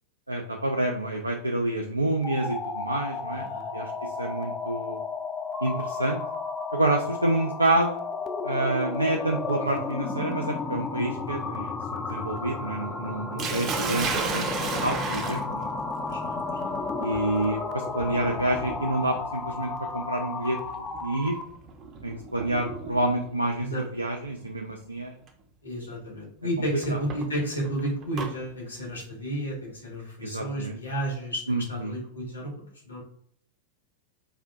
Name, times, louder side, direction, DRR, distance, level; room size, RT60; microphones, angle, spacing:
voice 1, 0.3-3.5 3.7-5.0 5.6-6.2 6.7-8.0 8.4-15.7 17.0-21.4 22.0-25.1 26.9-27.0 30.2-30.8 31.5-31.9, right 1 dB, 85° right, 2 dB, 0.3 m, -28 dB
sound 1, 2.2-21.5, left 4 dB, 20° left, 0.4 m, -33 dB
voice 2, 3.3-3.7 9.6-9.8 13.4-13.6 16.0-16.7 23.6-23.8 25.6-33.0, right 1 dB, 75° left, -3 dB, 1.3 m, -32 dB
Sink (filling or washing), 13.4-23.3 24.4-24.8 25.3-25.4 26.8-28.3, right 4 dB, 30° right, 0.6 m, -35 dB
4.2 x 2.5 x 2.4 m, 0.66 s
figure-of-eight pair, 90°, 0 cm